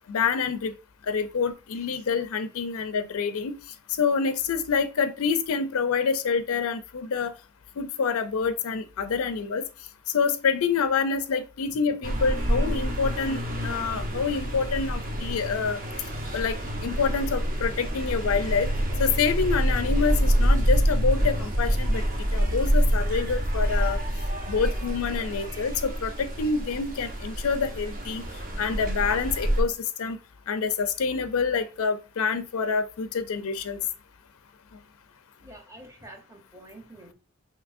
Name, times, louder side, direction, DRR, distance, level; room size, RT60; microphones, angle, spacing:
voice 1, 0.1-0.7 1.1-3.5 4.0-7.3 7.8-9.6 10.1-15.8 16.3-16.6 16.8-18.7 19.0-22.0 22.3-24.0 24.5-28.2 28.6-30.2 30.5-33.8, left 5 dB, 80° left, 0.4 m, -27 dB
sound 1, 12.0-29.6, equal, 40° right, 0.9 m, -27 dB
voice 2, 35.4-37.1, right 1 dB, 15° right, 0.8 m, -47 dB
5.9 x 2.8 x 2.5 m
head